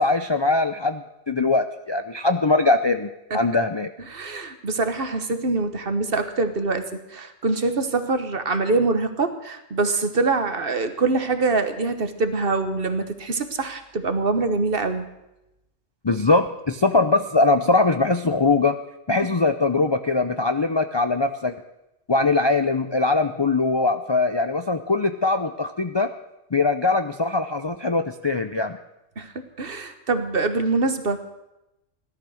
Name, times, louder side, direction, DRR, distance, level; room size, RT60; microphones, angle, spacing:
voice 1, 0.0-3.9 16.0-18.8 19.1-21.5 22.1-26.1 26.5-28.8, left 3 dB, 35° left, 8 dB, 0.4 m, -21 dB
voice 2, 4.1-15.1 29.2-31.2, right 3 dB, 45° right, 9 dB, 1.4 m, -24 dB
17.0 x 12.0 x 6.4 m, 0.90 s
omnidirectional pair, 1.4 m